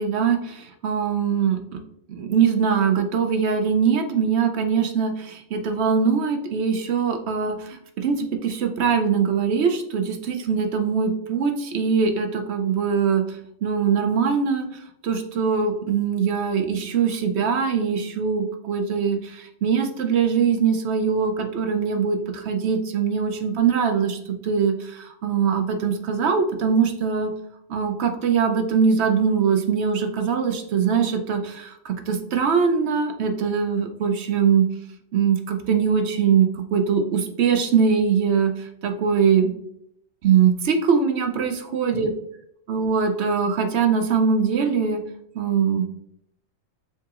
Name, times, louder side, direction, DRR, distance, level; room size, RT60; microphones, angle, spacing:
voice 1, 0.0-1.6 2.1-27.3 27.7-34.7 35.1-39.5 40.2-42.1 42.7-45.0 45.3-45.9, right 6 dB, 65° right, 5 dB, 0.7 m, -22 dB
7.2 x 2.9 x 2.4 m, 0.74 s
omnidirectional pair, 1.4 m